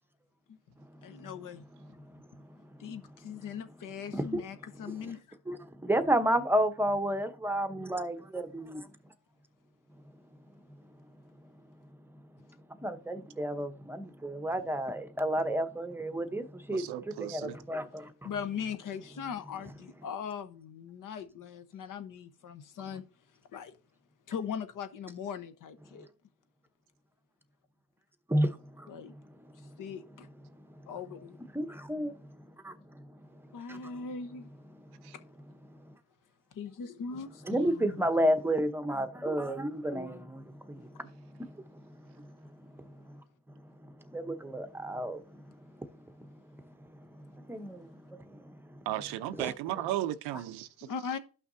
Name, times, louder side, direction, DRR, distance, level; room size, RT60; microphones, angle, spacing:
voice 1, 1.0-1.6 2.8-5.2 18.2-23.0 23.5-23.7 24.3-26.1 28.9-29.1 29.8-30.3 30.9-31.4 33.5-34.5 35.1-35.2 36.5-38.3 50.8-51.2, left 6 dB, 55° left, 1.0 m, -40 dB
voice 2, 2.5-2.8 4.1-4.4 5.0-5.1 5.5-8.9 12.8-18.3 28.3-28.9 30.6-30.9 31.5-32.8 33.7-33.9 35.7-35.8 37.5-42.9 44.1-45.6 45.9-46.3 46.6-46.9 47.1-48.6 49.4-49.5, right 1 dB, 5° right, 0.8 m, -32 dB
voice 3, 16.7-17.6 35.0-35.1 48.9-50.9, right 13 dB, 90° right, 0.7 m, -35 dB
12.5 x 5.9 x 2.7 m
cardioid pair, 105°, 38 cm